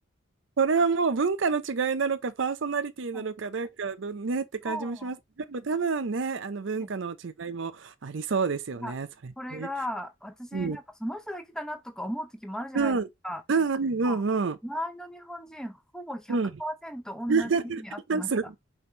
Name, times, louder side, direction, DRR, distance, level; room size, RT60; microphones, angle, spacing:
voice 1, 0.6-5.2 5.5-9.7 10.5-10.8 12.7-13.1 13.5-14.6 16.3-16.6 17.3-17.8 18.1-18.6, right 4 dB, 65° right, 0.5 m, -28 dB
voice 2, 4.6-5.1 6.8-6.9 8.8-8.9 9.4-13.0 13.2-13.4 14.0-14.2 14.6-18.3, equal, 5° left, 0.6 m, -36 dB
5.4 x 3.5 x 2.8 m
head